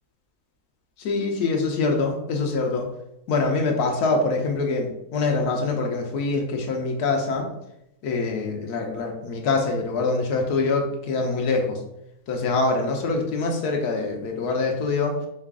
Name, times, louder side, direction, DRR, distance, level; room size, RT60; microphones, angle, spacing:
voice 1, 1.0-2.9 3.3-7.5 8.0-11.8 12.3-15.2, left 3 dB, 85° left, 2 dB, 1.3 m, -24 dB
4.9 x 2.4 x 3.5 m, 0.80 s
omnidirectional pair, 1.6 m